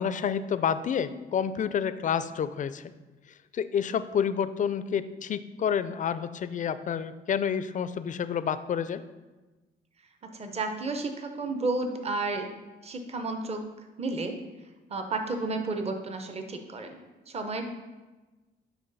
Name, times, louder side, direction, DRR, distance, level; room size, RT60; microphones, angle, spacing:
voice 1, 0.0-2.8 3.5-9.0, left 7 dB, 40° left, 13 dB, 0.4 m, -29 dB
voice 2, 10.3-12.5 12.8-13.6 14.0-14.4 14.9-17.0 17.3-17.7, right 3 dB, 30° right, 6 dB, 0.7 m, -32 dB
9.2 x 3.5 x 4.0 m, 1.2 s
cardioid pair, 90°, 20 cm